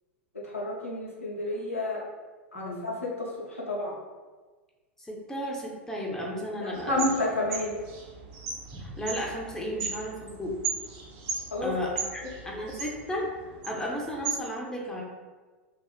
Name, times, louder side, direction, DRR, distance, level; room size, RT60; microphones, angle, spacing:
voice 1, 0.4-2.0 2.5-4.0 6.6-7.7 11.5-11.7 12.0-12.1, left 2 dB, 90° left, -4 dB, 0.6 m, -30 dB
voice 2, 2.5-2.9 5.0-7.3 8.7-10.6 11.6-13.3 13.6-15.0, equal, 5° left, -2 dB, 0.5 m, -34 dB
sound 1, 6.7-14.3, right 5 dB, 45° right, 0.5 m, -37 dB
2.7 x 2.4 x 2.3 m, 1.3 s
figure-of-eight pair, 90°, 7 cm